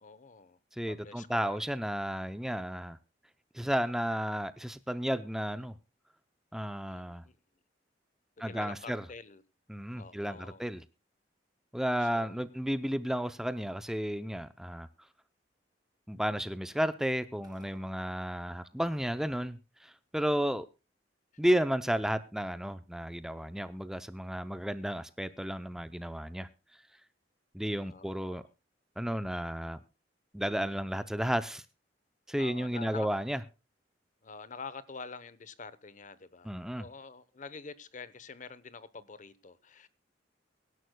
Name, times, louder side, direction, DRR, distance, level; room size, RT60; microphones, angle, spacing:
voice 1, 0.0-0.6 0.9-1.6 6.9-7.4 8.5-9.4 9.9-10.6 12.0-12.5 16.7-16.8 27.8-28.5 32.4-33.1 34.2-39.9, left 4 dB, 45° left, 0.9 m, -47 dB
voice 2, 0.8-3.0 3.5-5.7 6.5-7.2 8.4-9.0 9.7-10.8 11.7-14.9 16.1-20.7 21.4-26.5 27.5-28.4 29.0-29.8 30.3-31.6 32.3-33.4 36.4-36.8, equal, 5° right, 0.5 m, -33 dB
sound 1, 17.4-18.7, right 1 dB, 25° right, 2.6 m, -61 dB
23.5 x 11.0 x 2.2 m
head